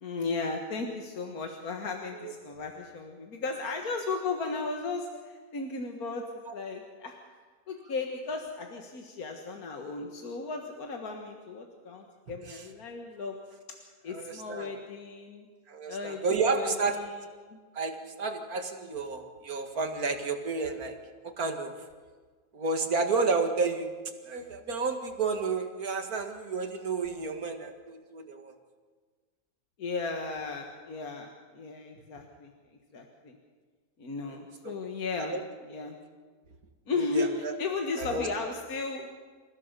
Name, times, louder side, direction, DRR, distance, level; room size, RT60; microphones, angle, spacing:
voice 1, 0.0-7.2 7.7-13.4 14.0-15.5 15.9-16.2 16.5-17.1 17.5-17.6 29.8-32.5 32.9-33.4 34.0-35.3 35.7-36.0 36.9-39.1, left 4 dB, 80° left, 3 dB, 2.1 m, -35 dB
voice 2, 14.1-14.7 15.7-17.0 17.7-21.0 21.4-21.7 22.5-24.0 24.2-28.5 34.3-34.4 34.6-34.7 35.2-35.4 36.9-37.5 38.0-38.3, right 4 dB, 80° right, 5 dB, 2.5 m, -31 dB
28.0 x 15.5 x 6.8 m, 1.5 s
omnidirectional pair, 1.5 m